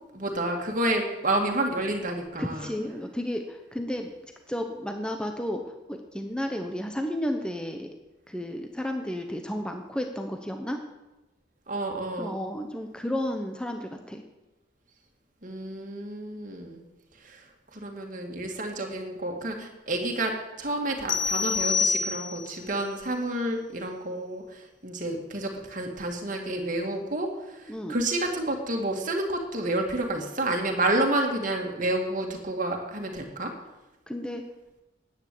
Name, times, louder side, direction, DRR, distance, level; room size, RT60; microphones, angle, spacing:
voice 1, 0.1-2.7 11.7-12.4 15.4-16.8 17.2-17.4 17.7-33.5, right 1 dB, 45° right, 2 dB, 2.1 m, -29 dB
voice 2, 2.4-4.1 4.5-7.9 8.3-10.8 12.2-14.2 27.7-28.0 34.1-34.4, left 1 dB, 5° left, 4 dB, 0.9 m, -32 dB
sound 1, 21.1-22.6, left 5 dB, 85° left, 1.3 m, -26 dB
10.5 x 9.3 x 7.8 m, 1.0 s
head